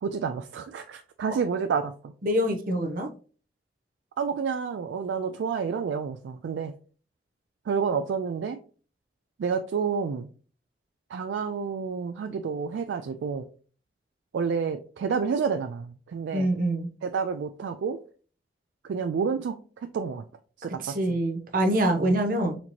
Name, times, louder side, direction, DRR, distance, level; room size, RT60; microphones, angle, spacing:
voice 1, 0.0-2.1 4.2-6.7 7.7-8.6 9.4-10.3 11.1-13.5 14.3-16.5 17.0-18.0 18.9-20.2 20.6-21.2 22.0-22.2, right 6 dB, 85° right, 7 dB, 0.3 m, -29 dB
voice 2, 2.2-3.1 16.3-16.9 20.8-22.6, right 1 dB, 50° right, 4 dB, 0.7 m, -25 dB
4.3 x 2.8 x 2.9 m, 0.40 s
head